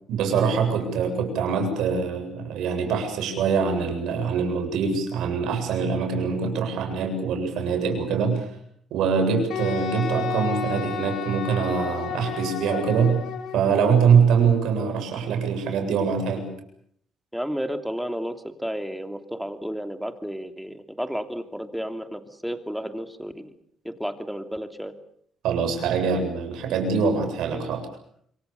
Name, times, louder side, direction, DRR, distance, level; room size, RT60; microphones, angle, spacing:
voice 1, 0.1-8.5 8.9-13.2 13.5-16.5 25.4-27.9, right 6 dB, 80° right, 5 dB, 7.5 m, -23 dB
Wind instrument woodwind instrument, 9.5-13.8, left 9 dB, 75° left, 5.4 m, -32 dB
voice 2, 17.3-23.5 23.8-24.9, equal, ahead, 7 dB, 2.9 m, -32 dB
27.0 x 24.0 x 7.1 m, 0.66 s
cardioid pair, 90°, 0 cm